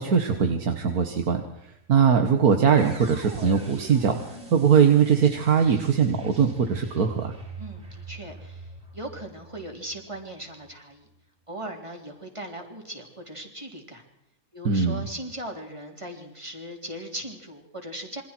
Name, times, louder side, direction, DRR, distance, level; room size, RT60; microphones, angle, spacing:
voice 1, 0.0-1.4 1.9-7.3 14.6-15.0, right 6 dB, 85° right, 5 dB, 2.1 m, -21 dB
sound 1, 2.8-10.7, right 2 dB, 35° right, 6.0 m, -43 dB
voice 2, 7.6-8.7 8.9-11.1 11.5-14.0 14.5-18.2, right 1 dB, 20° right, 2 dB, 3.8 m, -38 dB
28.0 x 24.5 x 4.6 m, 0.83 s
omnidirectional pair, 1.5 m